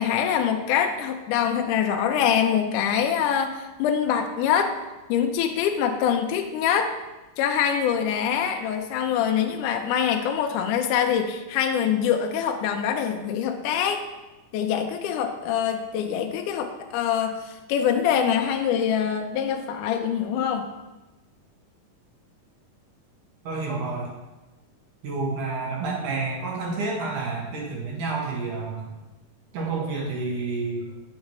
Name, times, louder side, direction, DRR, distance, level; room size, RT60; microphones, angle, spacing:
voice 1, 0.0-4.8 5.1-6.9 7.4-14.0 14.5-20.7, left 8 dB, 80° left, 4 dB, 1.9 m, -24 dB
voice 2, 23.4-24.1 25.0-28.9 29.5-30.8, right 3 dB, 70° right, -3 dB, 3.0 m, -29 dB
9.0 x 6.4 x 3.0 m, 1.1 s
omnidirectional pair, 3.8 m